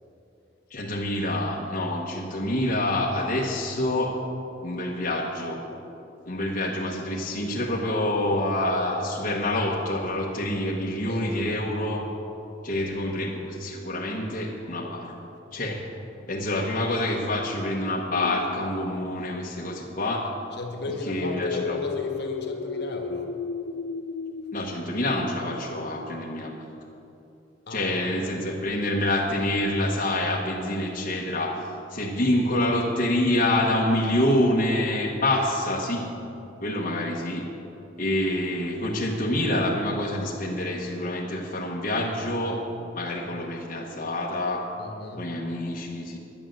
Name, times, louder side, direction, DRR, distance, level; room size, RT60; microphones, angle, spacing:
voice 1, 0.7-4.2 4.6-5.6 6.3-12.0 12.6-15.1 15.5-15.8 16.3-20.3 21.1-21.8 24.5-26.6 27.7-31.6 31.9-36.1 36.6-37.5 38.0-42.6 42.9-44.6 45.2-46.2, left 1 dB, 45° left, -4 dB, 1.2 m, -27 dB
voice 2, 11.1-11.4 20.5-23.3 27.7-28.1 44.8-45.3, left 2 dB, 60° left, 3 dB, 1.5 m, -35 dB
sound 1, 18.1-19.4 21.2-24.6, left 5 dB, 80° left, 0.4 m, -33 dB
10.5 x 9.8 x 7.5 m, 2.9 s
head